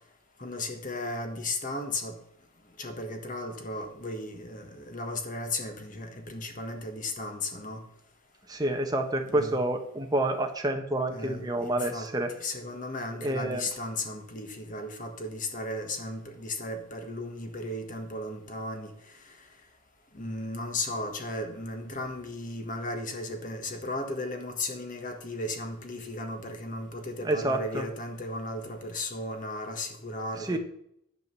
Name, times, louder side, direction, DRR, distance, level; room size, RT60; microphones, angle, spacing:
voice 1, 0.4-2.2 2.8-7.8 9.2-9.6 11.1-12.1 12.4-19.4 20.1-30.6, left 2 dB, 40° left, 1.5 m, -35 dB
voice 2, 8.5-12.3 13.2-13.6 27.2-27.9 30.4-30.6, right 1 dB, 20° right, 1.3 m, -28 dB
11.0 x 5.2 x 6.9 m
head